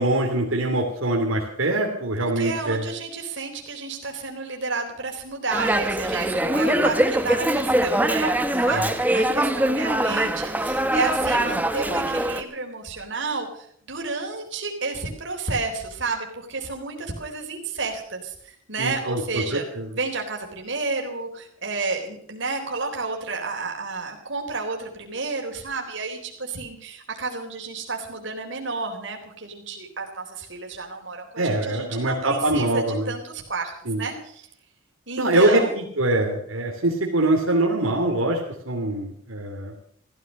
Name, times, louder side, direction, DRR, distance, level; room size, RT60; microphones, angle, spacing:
voice 1, 0.0-2.8 8.7-8.9 18.8-19.9 31.4-33.1 33.9-34.0 35.2-39.7, right 2 dB, 85° right, 0 dB, 2.8 m, -23 dB
voice 2, 2.2-19.6 19.9-34.5 35.1-35.7, right 3 dB, 60° right, 2 dB, 3.9 m, -31 dB
Dog, 5.5-12.4, right 1 dB, 10° right, 0.9 m, -23 dB
15.5 x 13.0 x 6.5 m, 0.64 s
head